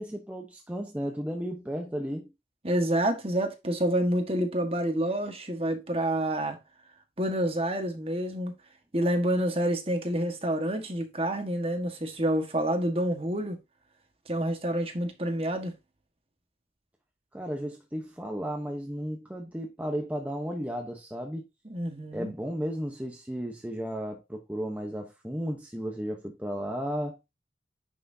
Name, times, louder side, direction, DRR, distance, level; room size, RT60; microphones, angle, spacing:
voice 1, 0.0-2.3 17.3-21.5 22.1-27.2, equal, 10° right, 0.9 m, -34 dB
voice 2, 2.6-6.6 7.2-8.5 8.9-13.6 14.3-15.7 21.6-22.3, right 1 dB, 30° right, 1.5 m, -28 dB
10.0 x 5.6 x 2.7 m
head